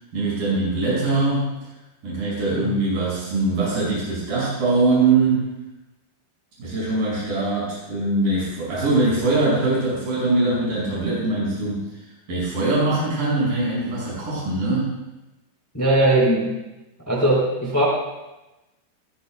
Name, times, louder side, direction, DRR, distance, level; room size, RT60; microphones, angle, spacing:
voice 1, 0.1-1.5 2.0-5.5 6.6-11.8 12.3-14.9, right 2 dB, 60° right, -7 dB, 8.0 m, -22 dB
voice 2, 15.7-16.6 17.1-17.8, right 1 dB, 5° left, -3 dB, 2.9 m, -19 dB
29.0 x 13.0 x 2.3 m, 1.0 s
omnidirectional pair, 4.5 m